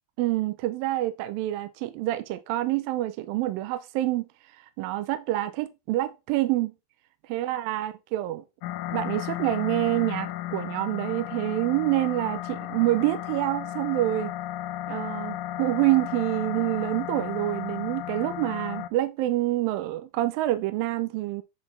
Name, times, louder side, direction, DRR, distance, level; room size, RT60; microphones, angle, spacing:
voice 1, 0.2-4.3 4.8-6.7 7.3-8.4 8.9-14.3 14.9-21.4, right 16 dB, 80° right, 2.1 m, -27 dB
sound 1, 8.6-18.9, left 13 dB, 80° left, 2.0 m, -34 dB
9.9 x 3.9 x 3.9 m
omnidirectional pair, 4.5 m